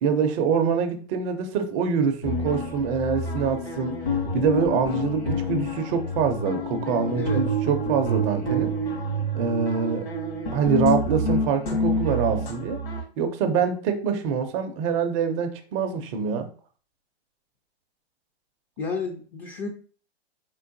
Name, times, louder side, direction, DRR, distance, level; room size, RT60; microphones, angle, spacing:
voice 1, 0.0-4.0 4.3-8.7 9.3-10.1 10.5-12.8 13.2-16.5, right 6 dB, 30° right, 0.6 m, -25 dB
sound 1, 2.2-13.0, equal, 65° left, 1.8 m, -28 dB
voice 2, 7.2-7.5 18.8-19.7, left 4 dB, 25° left, 0.5 m, -31 dB
4.0 x 3.8 x 2.6 m
hypercardioid pair, 140°, 33 cm